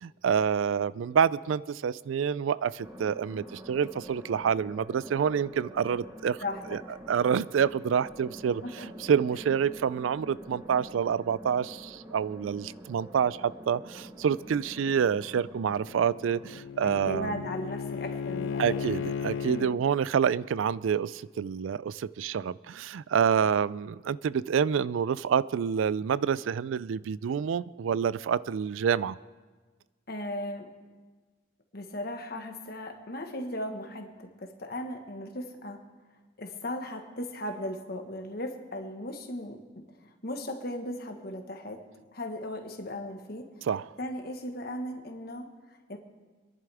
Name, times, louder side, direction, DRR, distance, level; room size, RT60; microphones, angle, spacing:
voice 1, 0.0-6.4 6.7-6.8 7.1-17.4 18.6-29.2 43.6-43.9, right 7 dB, 85° right, 0.3 m, -27 dB
sound 1, 2.8-16.6, equal, 15° right, 1.2 m, -46 dB
voice 2, 6.4-6.8 8.6-8.9 16.8-18.9 19.4-19.7 30.1-30.7 31.7-35.8 36.4-39.8 40.2-41.9 42.1-43.5 44.0-45.5 45.9-46.0, left 1 dB, 50° left, 1.4 m, -37 dB
Bowed string instrument, 15.7-19.8, left 6 dB, 80° left, 0.3 m, -35 dB
26.0 x 11.0 x 3.5 m
head